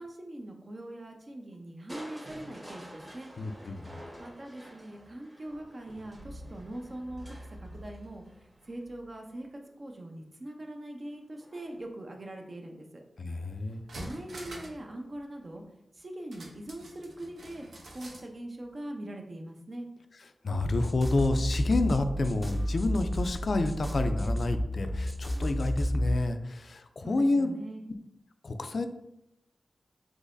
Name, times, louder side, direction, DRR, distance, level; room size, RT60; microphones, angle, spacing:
voice 1, 0.0-3.3 4.2-8.2 8.6-13.0 14.0-15.6 15.9-17.6 17.9-19.9 27.0-27.9, right 1 dB, 50° right, 2 dB, 0.6 m, -42 dB
Crushing, 1.9-9.8 11.4-11.9 12.4-12.5, equal, 30° right, 1.3 m, -48 dB
voice 2, 3.4-4.0 13.2-13.8 20.4-27.5 28.4-28.9, left 2 dB, 65° left, 8 dB, 0.3 m, -29 dB
sound 1, 13.7-14.8 15.1-15.2 16.3-18.3 18.6-18.7, right 1 dB, 85° right, 0.7 m, -45 dB
sound 2, 20.5-26.1, equal, ahead, 0.5 m, -31 dB
3.9 x 2.9 x 2.6 m, 0.84 s
cardioid pair, 40°, 0 cm